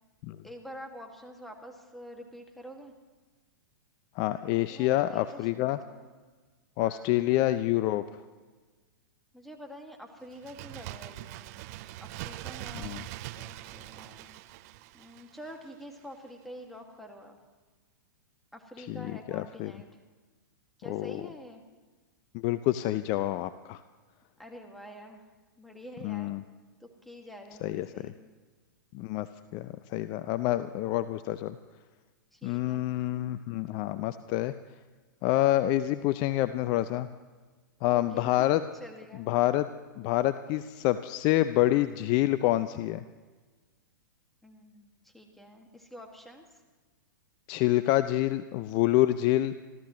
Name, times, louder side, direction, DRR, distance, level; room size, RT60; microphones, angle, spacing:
voice 1, 0.4-2.9 4.7-6.1 6.8-7.2 9.3-11.5 12.0-14.3 14.9-17.4 18.5-19.9 20.8-21.6 24.4-25.2 25.6-26.3 26.8-28.2 32.3-32.9 37.9-38.5 38.8-39.3 44.4-46.6, equal, ahead, 2 dB, 2.0 m, -47 dB
voice 2, 4.2-5.8 6.8-8.0 12.8-13.0 18.8-19.1 19.3-19.7 20.9-21.2 22.3-23.8 26.0-26.4 27.6-27.9 28.9-29.3 29.5-31.6 32.4-34.5 35.2-37.1 37.8-38.6 39.3-39.6 40.0-43.0 47.5-49.5, left 15 dB, 40° left, 13 dB, 0.5 m, -27 dB
Bird, 10.3-15.8 16.1-16.2, right 16 dB, 45° right, 0.6 m, -43 dB
27.5 x 13.5 x 3.1 m, 1.3 s
hypercardioid pair, 120°, 11 cm